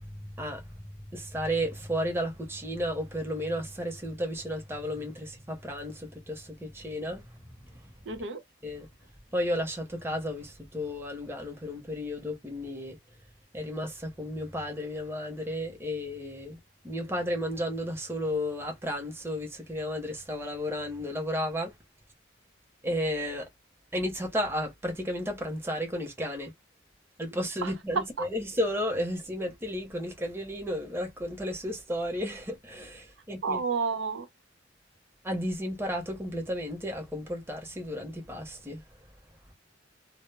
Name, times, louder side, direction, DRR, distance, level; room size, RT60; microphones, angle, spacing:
voice 1, 0.0-7.9 8.6-8.9 9.3-13.0 13.5-16.6 16.8-21.7 22.8-23.5 23.9-26.5 27.2-33.6 35.2-38.8, equal, 15° right, 0.7 m, -33 dB
voice 2, 8.1-8.4 27.6-28.3 33.4-34.3, right 4 dB, 90° right, 0.6 m, -31 dB
2.0 x 2.0 x 3.2 m
head